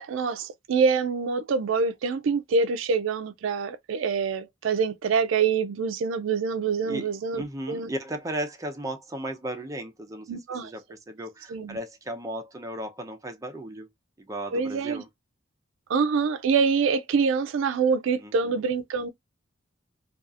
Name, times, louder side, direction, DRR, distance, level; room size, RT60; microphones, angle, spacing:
voice 1, 0.0-7.9 10.3-10.7 11.5-11.8 14.5-15.0 15.9-19.1, right 5 dB, 75° right, 0.4 m, -25 dB
voice 2, 6.8-13.9 14.2-15.1 18.2-18.6, right 1 dB, 15° right, 0.5 m, -36 dB
2.7 x 2.3 x 2.4 m
head